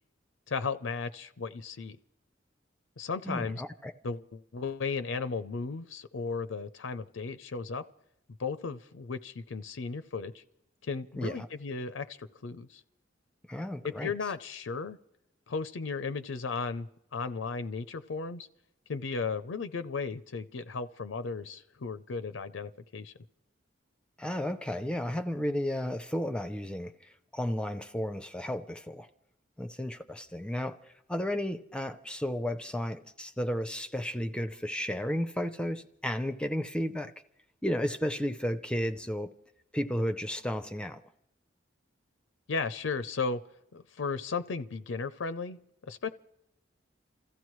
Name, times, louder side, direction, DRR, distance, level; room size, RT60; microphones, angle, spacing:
voice 1, 0.5-2.0 3.0-3.6 4.0-7.8 8.4-10.4 10.8-12.8 13.8-15.0 15.5-18.5 18.9-23.1 42.5-43.4 43.7-45.6 45.9-46.1, left 4 dB, 85° left, 0.5 m, -35 dB
voice 2, 3.2-3.9 11.2-11.5 13.5-14.1 24.2-29.1 29.6-30.8 31.1-37.1 37.6-39.3 39.7-41.0, equal, 5° left, 0.5 m, -33 dB
28.5 x 15.0 x 3.1 m
head